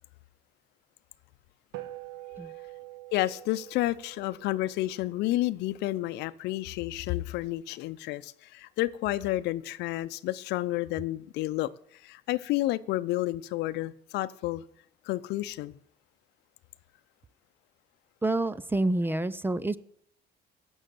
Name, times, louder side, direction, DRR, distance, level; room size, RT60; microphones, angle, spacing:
sound 1, 1.7-6.4, right 16 dB, 85° right, 1.4 m, -46 dB
voice 1, 3.1-14.6 15.0-15.8, left 16 dB, 85° left, 0.6 m, -30 dB
voice 2, 18.2-19.8, right 2 dB, 10° right, 0.6 m, -28 dB
17.0 x 6.4 x 7.8 m
cardioid pair, 110°, 17 cm